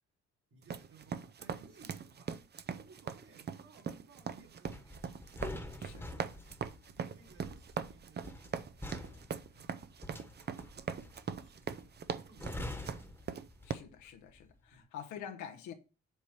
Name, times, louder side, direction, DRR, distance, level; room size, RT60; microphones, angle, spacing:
voice 1, 0.5-2.3 2.7-5.2 5.8-6.4 6.9-9.9 10.2-11.0 11.3-11.9 12.3-12.8 14.7-14.9, right 4 dB, 55° right, 3.5 m, -62 dB
sound 1, 0.6-13.7, right 6 dB, 35° right, 0.6 m, -41 dB
sound 2, 4.6-14.0 14.3-14.6, left 1 dB, 5° left, 1.3 m, -46 dB
voice 2, 13.6-15.7, left 8 dB, 85° left, 1.2 m, -46 dB
8.0 x 2.9 x 6.0 m
supercardioid pair, 75°, 29 cm